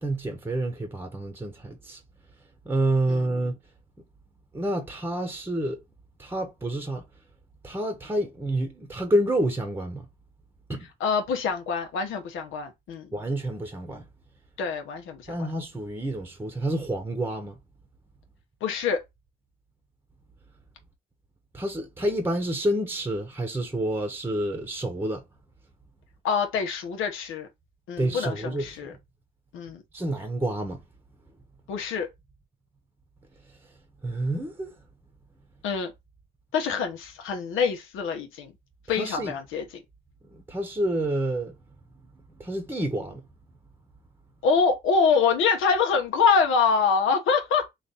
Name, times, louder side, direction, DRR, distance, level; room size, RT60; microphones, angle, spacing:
voice 1, 0.0-2.0 2.6-3.6 4.5-5.8 6.2-7.0 7.6-10.0 10.7-10.8 13.1-14.0 15.3-17.6 21.5-25.2 28.0-28.9 29.9-30.8 34.0-34.7 38.9-39.3 40.3-41.5 42.4-43.2, right 1 dB, 10° right, 0.9 m, -28 dB
voice 2, 11.0-13.1 14.6-15.4 18.6-19.0 26.2-27.5 27.9-28.9 29.5-29.8 31.7-32.1 35.6-35.9 36.5-38.5 38.9-39.8 44.4-47.7, left 5 dB, 85° left, 1.0 m, -25 dB
3.2 x 2.5 x 4.0 m
cardioid pair, 90°, 20 cm